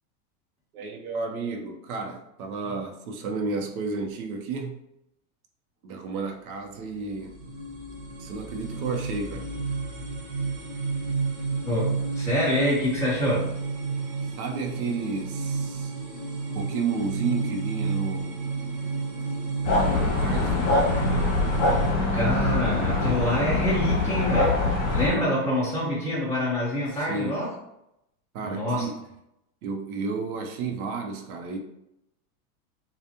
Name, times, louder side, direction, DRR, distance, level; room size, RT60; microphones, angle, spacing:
voice 1, 0.7-4.8 5.8-7.4 8.2-9.5 14.4-15.9 16.5-18.5 19.7-20.9 25.1-25.3 26.9-27.5 28.3-29.0 29.6-31.6, right 4 dB, 70° right, 4 dB, 0.9 m, -32 dB
sound 1, 6.6-21.9, right 4 dB, 20° right, 0.6 m, -31 dB
voice 2, 11.6-13.5 22.1-24.6 24.9-27.5 28.4-28.9, left 1 dB, 5° left, -7 dB, 1.2 m, -26 dB
sound 2, 19.6-25.1, left 2 dB, 55° left, 1.6 m, -24 dB
6.9 x 2.4 x 2.9 m, 0.82 s
supercardioid pair, 165°, 45 cm